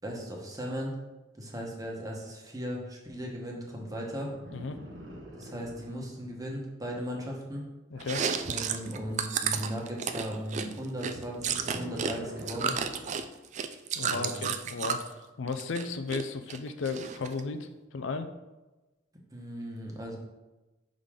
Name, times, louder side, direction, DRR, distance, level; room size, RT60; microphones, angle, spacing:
voice 1, 0.0-0.9 1.3-4.3 5.4-7.6 8.5-12.8 14.1-14.4 19.3-20.2, equal, 20° right, -1 dB, 1.1 m, -37 dB
sound 1, 4.3-6.3 7.9-9.7 11.0-13.3 14.6-14.7, right 1 dB, 80° right, 1.2 m, -46 dB
voice 2, 7.9-8.2 13.9-18.3, left 4 dB, 80° left, 8 dB, 0.5 m, -35 dB
Chewing mastication, 8.0-12.1 12.4-15.1 15.5-16.2 16.5-17.4, right 7 dB, 40° right, 0.3 m, -32 dB
5.7 x 4.9 x 3.7 m, 1.1 s
head